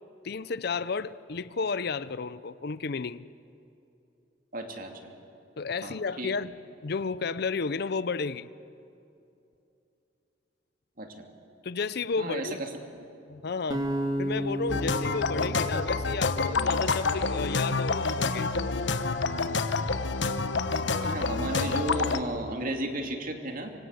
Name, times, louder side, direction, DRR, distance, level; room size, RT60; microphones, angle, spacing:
voice 1, 0.2-3.3 5.6-6.5 6.8-8.5 11.6-12.6 13.3-13.9 14.2-18.5, left 4 dB, 60° left, 0.6 m, -32 dB
voice 2, 4.5-5.1 5.8-6.3 11.0-11.3 12.2-12.7 13.0-13.1 21.0-23.7, right 1 dB, 50° right, 2.7 m, -34 dB
sound 1, 13.7-16.9, equal, 25° right, 2.4 m, -33 dB
sound 2, 14.7-22.2, left 4 dB, 85° left, 1.1 m, -28 dB
25.5 x 25.0 x 8.1 m
head